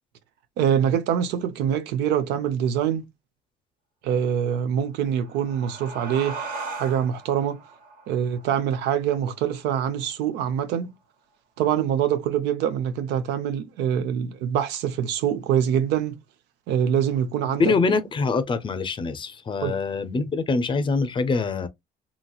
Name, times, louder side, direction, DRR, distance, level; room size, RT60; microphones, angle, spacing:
voice 1, 0.6-3.0 4.0-6.5 6.8-7.6 8.1-10.9 11.6-16.2 16.7-17.7 19.6-19.7, right 9 dB, 85° right, 0.5 m, -24 dB
sound 1, 5.0-10.1, right 4 dB, 55° right, 1.4 m, -39 dB
voice 2, 17.6-21.7, left 4 dB, 30° left, 0.5 m, -24 dB
2.9 x 2.8 x 2.3 m
cardioid pair, 110°, 17 cm